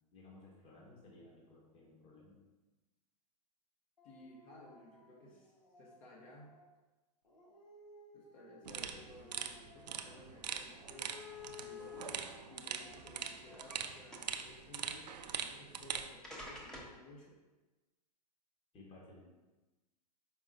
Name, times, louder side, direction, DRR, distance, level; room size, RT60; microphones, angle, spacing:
voice 1, 0.1-2.4 18.7-19.2, left 2 dB, 25° left, -3 dB, 1.2 m, -57 dB
Dog, 4.0-6.8 7.2-10.3 10.7-14.3, right 1 dB, 90° left, 0.9 m, -61 dB
voice 2, 4.0-6.5 8.1-11.3 11.5-17.4, left 2 dB, 50° left, -4 dB, 1.1 m, -57 dB
sound 1, 8.7-16.1, right 7 dB, 80° right, 0.4 m, -43 dB
sound 2, 10.4-10.5 11.1-12.1 12.9-13.8 14.1-14.5 15.6-15.7 16.2-17.0, left 4 dB, 5° left, 0.7 m, -49 dB
4.8 x 3.7 x 2.5 m, 1.1 s
hypercardioid pair, 110°, 21 cm